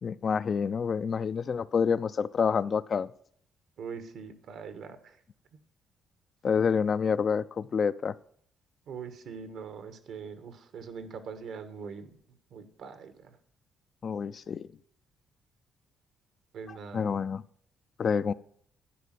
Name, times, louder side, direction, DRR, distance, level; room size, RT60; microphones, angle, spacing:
voice 1, 0.0-3.1 6.4-8.1 14.0-14.7 16.7-17.4 18.0-18.3, left 6 dB, 50° left, 14 dB, 0.4 m, -28 dB
voice 2, 3.8-5.2 8.9-12.2 12.5-13.4 16.5-17.2, right 6 dB, 75° right, 11 dB, 1.2 m, -42 dB
11.5 x 5.1 x 7.4 m, 0.64 s
cardioid pair, 90°, 0 cm